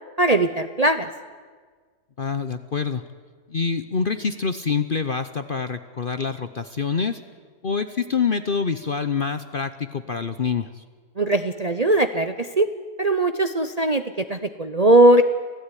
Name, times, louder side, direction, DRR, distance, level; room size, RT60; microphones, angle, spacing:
voice 1, 0.2-1.1 11.2-12.7 13.0-15.2, right 1 dB, 35° right, 9 dB, 0.7 m, -19 dB
voice 2, 2.2-3.0 3.5-7.2 7.6-10.8, left 5 dB, 45° left, 11 dB, 0.8 m, -26 dB
27.0 x 16.5 x 9.9 m, 1.5 s
omnidirectional pair, 1.7 m